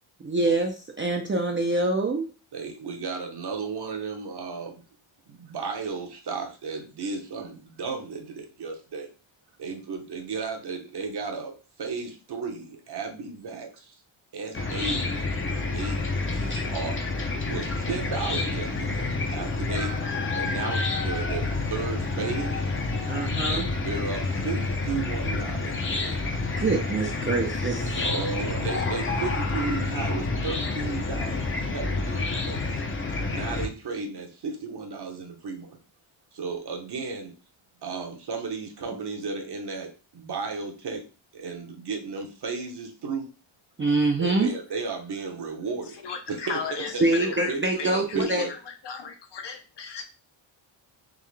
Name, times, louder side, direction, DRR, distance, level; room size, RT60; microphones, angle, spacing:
voice 1, 0.2-2.3 16.5-16.6 23.0-23.7 26.6-28.0 43.8-44.5 47.0-48.4, right 2 dB, 25° right, 0.5 m, -25 dB
voice 2, 2.5-4.8 5.3-9.1 9.6-11.5 11.8-14.0 14.3-17.0 17.4-20.0 20.3-22.7 23.5-26.2 28.0-32.8 33.3-35.8 36.3-37.3 37.8-41.0 41.3-43.3 44.2-46.0 46.3-48.5, right 4 dB, 55° right, 1.0 m, -34 dB
Chicken rooster / Cricket, 14.5-33.7, left 3 dB, 25° left, 0.6 m, -28 dB
voice 3, 46.0-50.1, left 6 dB, 60° left, 0.8 m, -36 dB
3.8 x 3.1 x 3.2 m
wide cardioid pair, 160°, 48 cm